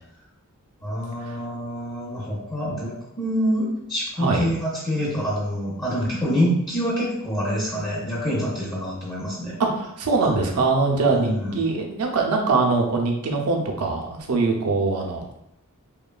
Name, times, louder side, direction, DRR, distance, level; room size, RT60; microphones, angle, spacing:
voice 1, 0.8-9.6 11.1-11.6, equal, 20° left, -7 dB, 0.6 m, -26 dB
voice 2, 9.6-15.2, right 3 dB, 75° right, 1 dB, 0.5 m, -22 dB
3.1 x 2.2 x 2.2 m, 0.80 s
head